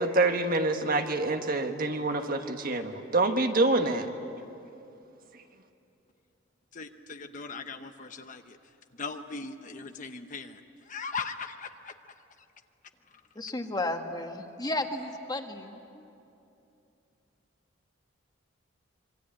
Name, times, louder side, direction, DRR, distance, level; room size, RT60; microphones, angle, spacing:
voice 1, 0.0-4.1, right 2 dB, 45° right, 5 dB, 1.5 m, -26 dB
voice 2, 6.7-8.6 9.0-11.9 13.1-13.2, left 4 dB, 40° left, 7 dB, 0.9 m, -39 dB
voice 3, 13.3-16.1, left 2 dB, 20° left, 4 dB, 1.7 m, -33 dB
26.5 x 23.5 x 8.9 m, 2.7 s
head